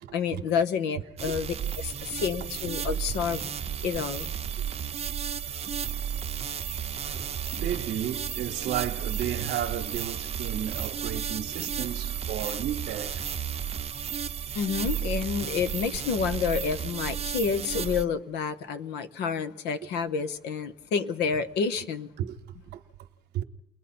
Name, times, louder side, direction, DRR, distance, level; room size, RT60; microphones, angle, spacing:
voice 1, 0.1-3.5 3.8-4.3 14.5-22.1, left 6 dB, 85° left, 1.1 m, -29 dB
sound 1, 1.2-18.0, right 8 dB, 40° right, 0.7 m, -33 dB
voice 2, 7.0-13.1 22.2-22.4 22.7-22.8 23.3-23.4, right 10 dB, 75° right, 0.9 m, -33 dB
29.5 x 20.5 x 4.3 m
cardioid pair, 110°, 17 cm